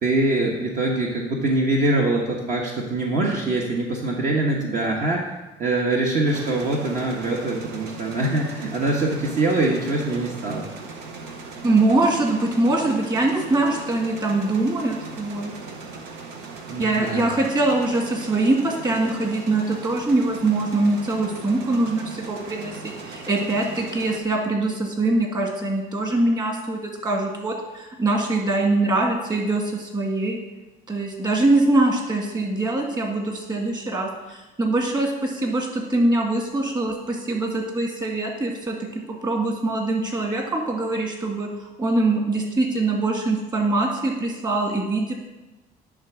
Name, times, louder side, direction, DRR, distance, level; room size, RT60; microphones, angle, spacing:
voice 1, 0.0-5.3 5.6-10.7 16.7-17.3, right 2 dB, 50° right, -2 dB, 1.3 m, -23 dB
sound 1, 6.3-24.2, right 4 dB, 90° right, 1.0 m, -38 dB
voice 2, 11.6-15.5 16.8-30.4 30.9-41.5 41.8-45.1, right 2 dB, 25° right, 0 dB, 1.9 m, -23 dB
10.5 x 3.6 x 6.1 m, 1.1 s
cardioid pair, 110°, 17 cm